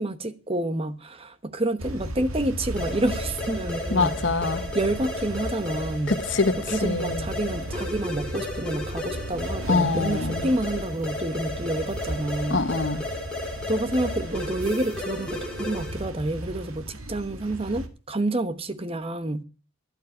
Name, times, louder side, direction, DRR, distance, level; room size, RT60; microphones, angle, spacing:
voice 1, 0.0-6.2 6.6-12.7 13.7-19.4, right 1 dB, 25° right, 1.0 m, -29 dB
sound 1, 1.8-17.9, right 1 dB, 90° right, 2.0 m, -36 dB
sound 2, 2.8-16.1, left 2 dB, 5° left, 3.4 m, -34 dB
voice 2, 3.9-4.6 6.1-6.5 6.8-7.2 9.7-10.5 12.5-13.0, left 3 dB, 55° left, 1.1 m, -24 dB
12.5 x 12.0 x 4.9 m
head